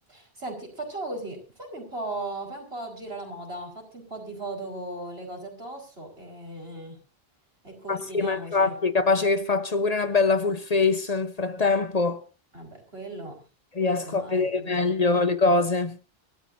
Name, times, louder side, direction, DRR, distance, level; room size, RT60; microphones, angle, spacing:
voice 1, 0.1-7.0 7.6-8.7 12.5-13.4 13.9-15.3, right 2 dB, 80° right, 5.1 m, -37 dB
voice 2, 7.9-12.2 13.8-16.0, left 3 dB, 40° left, 1.0 m, -23 dB
24.5 x 14.0 x 2.7 m
omnidirectional pair, 1.0 m